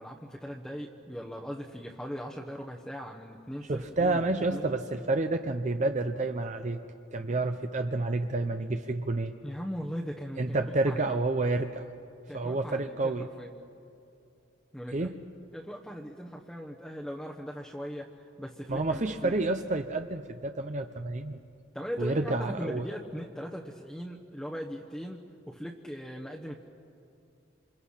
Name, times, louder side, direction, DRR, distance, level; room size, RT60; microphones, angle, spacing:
voice 1, 0.0-4.7 9.4-10.6 10.8-11.1 12.3-13.5 14.7-15.1 15.5-19.4 21.7-26.6, equal, 5° left, -2 dB, 1.0 m, -39 dB
voice 2, 3.7-6.8 7.1-9.3 10.4-11.8 12.3-13.3 14.9-15.2 18.7-21.4 22.0-22.9, right 2 dB, 40° right, 7 dB, 0.7 m, -29 dB
28.0 x 25.5 x 5.7 m, 2.6 s
head